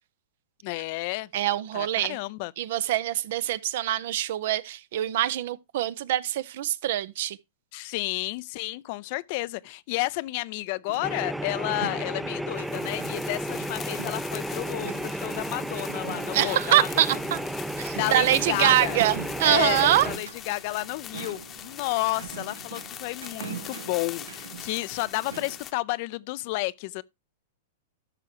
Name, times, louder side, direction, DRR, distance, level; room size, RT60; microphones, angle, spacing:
voice 1, 0.6-1.3 1.7-2.5 7.7-17.1 17.9-19.0 19.4-27.0, left 21 dB, 50° left, 0.4 m, -31 dB
voice 2, 1.3-2.2 2.6-7.4 16.3-17.4 17.8-20.1, right 13 dB, 65° right, 0.6 m, -24 dB
sound 1, 10.9-25.6, right 6 dB, 85° right, 1.1 m, -43 dB
sound 2, 11.0-20.2, right 1 dB, 5° right, 0.5 m, -33 dB
sound 3, 12.6-25.7, left 10 dB, 30° left, 0.9 m, -42 dB
13.0 x 6.0 x 2.8 m
hypercardioid pair, 115°, 0 cm